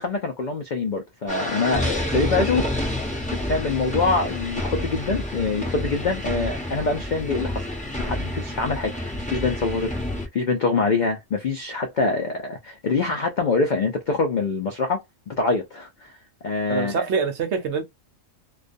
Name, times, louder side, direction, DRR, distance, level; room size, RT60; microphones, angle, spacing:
voice 1, 0.0-2.7 3.4-7.7 8.0-9.9 10.3-16.2 16.4-17.1, left 4 dB, 80° left, 0.4 m, -25 dB
sound 1, 1.3-10.3, left 1 dB, 10° left, 0.6 m, -29 dB
voice 2, 16.7-17.8, right 5 dB, 65° right, 0.9 m, -25 dB
2.3 x 2.3 x 2.4 m
omnidirectional pair, 1.4 m